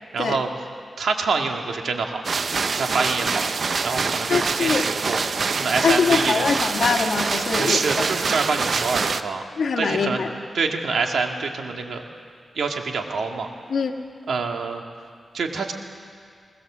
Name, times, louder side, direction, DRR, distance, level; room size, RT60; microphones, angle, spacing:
voice 1, 0.1-0.5 1.0-2.2 2.7-3.5 3.8-5.2 5.6-6.5 7.6-9.4 9.8-10.2 10.5-12.0 12.6-13.5 14.3-14.8 15.3-15.7, right 4 dB, 85° right, 3 dB, 2.0 m, -26 dB
sound 1, 2.2-9.2, right 4 dB, 60° right, 0.7 m, -25 dB
voice 2, 4.3-4.8 5.8-8.1 9.6-10.3 13.7-13.9, left 5 dB, 75° left, 4 dB, 1.7 m, -23 dB
22.0 x 20.5 x 7.4 m, 2.2 s
cardioid pair, 80°, 0 cm